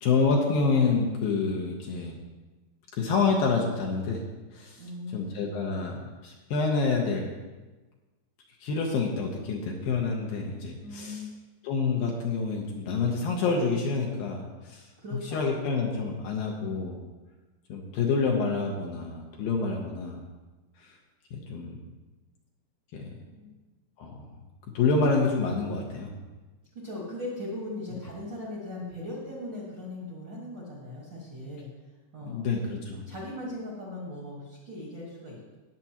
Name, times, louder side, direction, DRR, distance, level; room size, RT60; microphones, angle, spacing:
voice 1, 0.0-2.2 2.9-4.2 4.5-4.9 5.1-7.3 8.6-11.3 11.6-14.9 15.3-17.0 17.7-20.2 20.8-20.9 21.3-21.8 22.9-23.1 24.0-24.3 24.7-26.1 32.2-33.0, left 4 dB, 70° left, 0 dB, 2.4 m, -27 dB
voice 2, 4.8-5.3 10.8-11.3 15.0-15.5 23.4-23.5 26.7-31.7 32.1-32.4 33.1-35.5, left 1 dB, 50° right, -4 dB, 1.4 m, -38 dB
18.0 x 6.8 x 2.9 m, 1.2 s
omnidirectional pair, 4.7 m